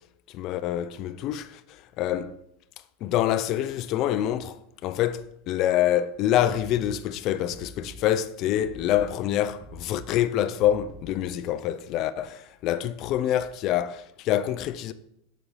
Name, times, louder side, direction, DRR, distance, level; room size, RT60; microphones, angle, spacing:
voice 1, 0.3-2.4 3.0-14.9, left 11 dB, 30° left, 0.3 m, -26 dB
sound 1, 6.5-11.5, right 1 dB, ahead, 1.4 m, -47 dB
7.0 x 5.1 x 5.4 m
supercardioid pair, 180°, 0 cm